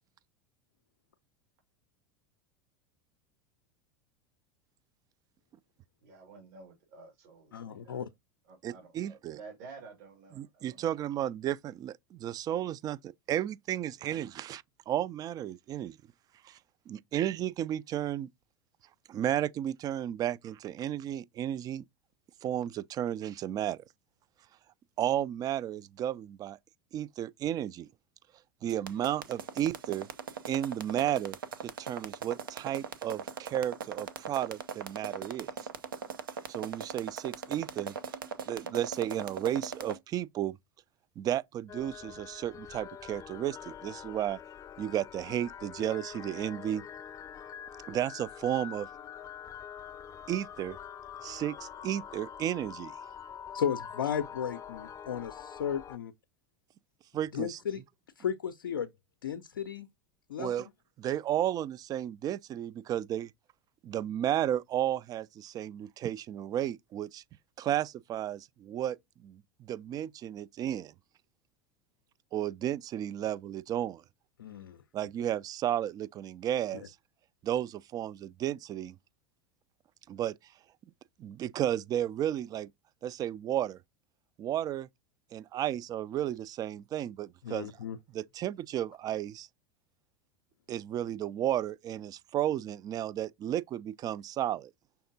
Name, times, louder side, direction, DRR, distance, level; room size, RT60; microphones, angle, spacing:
voice 1, 6.0-8.0 8.5-10.9, right 4 dB, 60° right, 2.1 m, -51 dB
voice 2, 7.5-8.1 53.5-56.1 57.3-57.8 58.2-58.9 59.2-59.9 60.3-60.5 74.4-74.8 87.4-88.0, left 8 dB, 80° left, 0.5 m, -34 dB
voice 3, 8.6-9.4 10.3-16.0 16.4-16.6 16.9-18.3 19.1-21.8 22.4-23.8 25.0-26.6 26.9-27.9 28.6-30.1 30.5-31.4 31.8-35.5 36.5-37.9 38.4-40.6 41.2-44.4 44.8-46.8 47.9-48.9 50.3-50.8 51.2-52.9 57.1-57.6 60.4-60.7 61.0-63.3 63.8-67.2 67.6-69.0 69.2-70.9 72.3-74.0 74.9-76.9 77.4-79.0 80.1-80.3 81.2-82.7 83.0-83.8 84.4-84.9 85.3-87.7 88.1-89.5 90.7-94.7, right 11 dB, 35° right, 0.4 m, -33 dB
sound 1, 28.7-40.0, right 6 dB, 85° right, 0.7 m, -39 dB
sound 2, 41.7-56.0, left 8 dB, 30° left, 0.5 m, -45 dB
5.8 x 3.5 x 2.7 m
hypercardioid pair, 85°, 11 cm